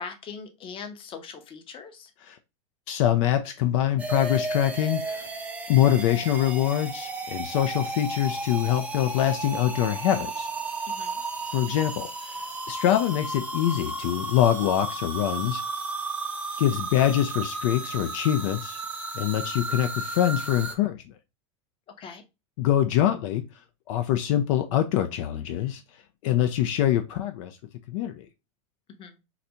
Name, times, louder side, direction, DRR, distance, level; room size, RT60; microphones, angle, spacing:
voice 1, 0.0-2.1 10.9-11.2 22.0-22.2 29.0-29.1, left 5 dB, 30° left, 0.8 m, -40 dB
voice 2, 2.9-5.3 5.7-10.5 11.5-15.6 16.6-18.8 19.1-21.0 22.6-23.4 23.9-25.8 26.2-27.6 27.9-28.3, left 11 dB, 65° left, 0.5 m, -24 dB
sound 1, 4.0-20.7, right 2 dB, 10° right, 0.5 m, -33 dB
3.9 x 2.2 x 2.7 m
supercardioid pair, 125°, 17 cm